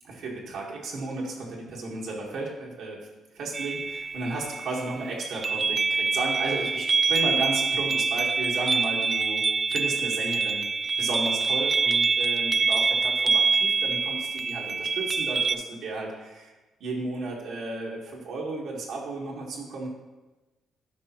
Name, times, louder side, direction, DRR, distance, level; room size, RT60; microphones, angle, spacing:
voice 1, 0.1-3.0 3.3-9.4 9.7-10.7 11.0-16.5 16.8-19.9, right 2 dB, 75° right, -3 dB, 1.3 m, -34 dB
sound 1, 3.5-15.5, right 5 dB, 35° right, 0.3 m, -25 dB
9.9 x 4.9 x 2.9 m, 1.1 s
cardioid pair, 90°, 0 cm